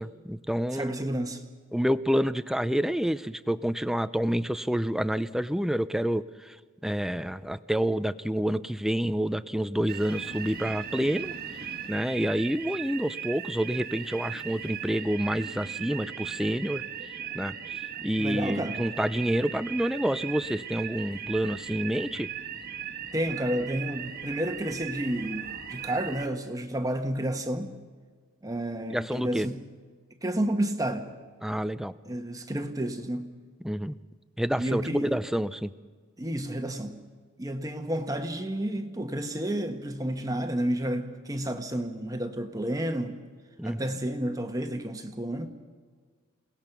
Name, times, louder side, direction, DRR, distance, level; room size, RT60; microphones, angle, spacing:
voice 1, 0.0-1.1 1.7-6.6 6.8-11.3 11.9-16.8 17.3-22.3 28.9-29.5 31.4-31.9 33.6-34.0 34.4-35.7 43.6-44.0, equal, ahead, 0.5 m, -28 dB
voice 2, 0.7-1.4 18.2-18.8 23.1-27.7 28.4-29.6 30.2-31.1 32.1-33.3 34.6-35.1 36.2-37.0 37.4-43.2 43.6-45.5, right 1 dB, 20° right, 1.2 m, -31 dB
Burglar Alarm, 9.9-26.3, right 8 dB, 50° right, 1.4 m, -38 dB
29.0 x 18.0 x 6.0 m
head